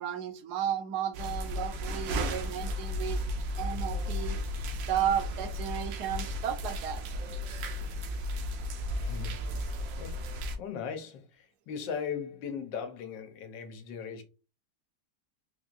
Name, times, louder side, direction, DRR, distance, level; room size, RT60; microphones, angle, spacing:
voice 1, 0.0-3.2 3.6-4.4 4.9-7.0, right 9 dB, 70° right, 1.1 m, -33 dB
sound 1, 1.1-10.6, left 1 dB, 85° right, 1.4 m, -34 dB
voice 2, 9.0-9.3 10.0-11.2 11.7-14.2, left 6 dB, 85° left, 1.4 m, -38 dB
4.4 x 3.3 x 2.4 m
omnidirectional pair, 1.9 m